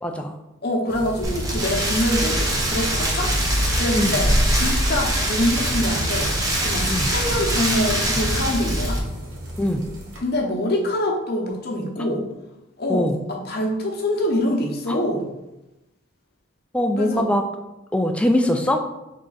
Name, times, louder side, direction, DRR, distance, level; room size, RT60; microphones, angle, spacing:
voice 1, 0.0-0.3 4.0-4.1 6.9-7.1 9.6-9.8 12.0-12.3 12.9-13.2 14.9-15.0 16.7-17.4 17.9-18.8, left 1 dB, 5° left, 4 dB, 0.3 m, -22 dB
voice 2, 0.6-3.3 3.7-6.3 6.6-9.0 10.2-12.2 12.8-15.2 17.0-17.3, left 1 dB, 50° left, 0 dB, 0.8 m, -25 dB
sound 1, 0.9-10.2, equal, 80° right, 1.0 m, -36 dB
Rain, 1.2-9.0, right 1 dB, 20° right, 0.7 m, -22 dB
3.7 x 3.3 x 3.9 m, 0.96 s
head